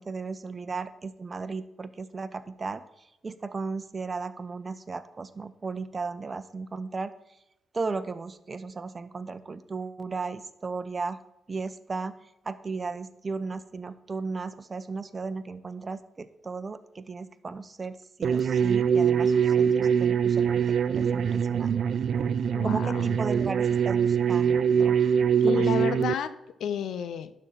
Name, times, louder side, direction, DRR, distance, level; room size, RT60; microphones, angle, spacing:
voice 1, 0.0-2.8 3.2-7.1 7.7-11.2 11.5-12.1 12.4-21.8 22.6-25.0 25.5-25.9, right 4 dB, 40° right, 13 dB, 0.8 m, -35 dB
sound 1, 18.2-26.1, right 7 dB, 70° right, 0.4 m, -23 dB
voice 2, 22.5-23.2 25.4-27.3, left 8 dB, 80° left, 13 dB, 0.6 m, -31 dB
12.0 x 4.3 x 5.8 m, 0.90 s
supercardioid pair, 55°, 0 cm